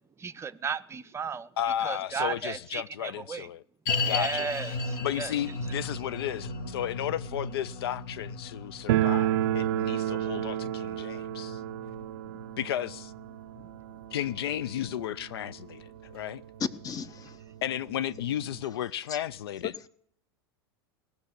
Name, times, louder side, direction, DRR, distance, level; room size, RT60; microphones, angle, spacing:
voice 1, 0.2-1.5 1.8-3.5 4.0-5.3 12.3-12.4, right 6 dB, 20° right, 0.6 m, -35 dB
voice 2, 1.6-3.6 4.0-4.5 5.0-11.6 12.6-13.1 14.1-16.4 17.6-19.9, left 11 dB, 75° left, 0.4 m, -33 dB
sound 1, 3.9-15.1 15.4-15.5 16.1-16.2, left 3 dB, 60° left, 1.4 m, -37 dB
sound 2, 8.9-15.6 15.9-16.0 16.2-16.3 17.1-17.2 17.4-18.6, right 13 dB, 65° right, 0.6 m, -31 dB
voice 3, 16.8-17.4 19.1-19.2, left 5 dB, 30° left, 0.8 m, -39 dB
18.5 x 6.7 x 6.6 m
hypercardioid pair, 95°, 13 cm